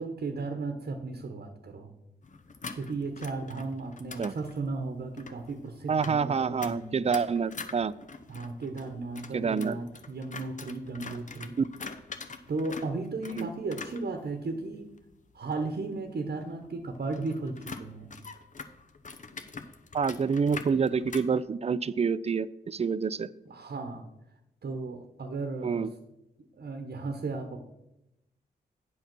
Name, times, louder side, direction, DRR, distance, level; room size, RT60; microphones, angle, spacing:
voice 1, 0.0-1.9 2.7-7.0 8.3-11.6 12.5-14.9 15.3-18.1 23.5-24.1 24.6-25.9 26.6-27.6, right 3 dB, 55° right, 6 dB, 1.0 m, -35 dB
sound 1, 2.2-21.4, left 4 dB, 45° left, 0.9 m, -45 dB
voice 2, 5.9-7.9 9.3-9.8 11.6-11.7 13.4-13.5 19.9-23.3 25.6-25.9, right 5 dB, 35° right, 18 dB, 0.4 m, -27 dB
8.1 x 5.7 x 6.0 m, 0.91 s
cardioid pair, 50°, 19 cm